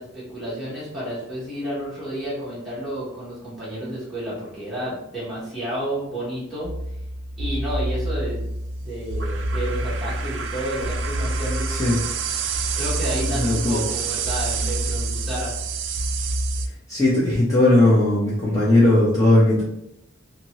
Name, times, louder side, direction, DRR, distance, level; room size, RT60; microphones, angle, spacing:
voice 1, 0.0-6.7 7.4-8.5 8.8-11.7 12.7-15.5, right 1 dB, ahead, -10 dB, 1.1 m, -31 dB
sound 1, 6.6-16.7, right 2 dB, 65° right, 0.3 m, -27 dB
voice 2, 11.7-12.0 13.3-13.8 16.9-19.6, left 1 dB, 15° left, -8 dB, 0.7 m, -18 dB
2.8 x 2.7 x 2.9 m, 0.81 s
head